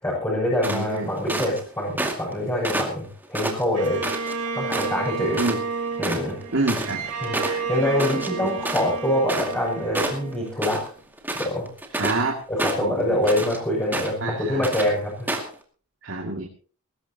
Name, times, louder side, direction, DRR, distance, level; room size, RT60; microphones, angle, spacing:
voice 1, 0.0-4.0 4.5-5.4 6.0-6.4 7.2-10.8 11.4-11.7 12.5-15.3, left 1 dB, 15° left, -6 dB, 7.1 m, -25 dB
sound 1, 0.6-1.6 2.0-2.3 2.6-4.3 4.7-5.1 5.3-5.6 5.8-9.7 9.9-10.9 11.2-12.2 12.6-13.6 13.9-14.3 14.6-14.9 15.3-15.5, right 1 dB, 10° right, 2.3 m, -29 dB
voice 2, 0.6-1.1 5.3-5.6 6.5-7.0 8.4-8.5 12.0-12.3 12.8-13.2 14.2-14.6 16.0-16.5, right 2 dB, 55° right, 1 dB, 2.6 m, -27 dB
Bowed string instrument, 3.7-11.0, right 4 dB, 90° right, 4.0 m, -32 dB
20.5 x 18.0 x 3.0 m, 0.40 s
head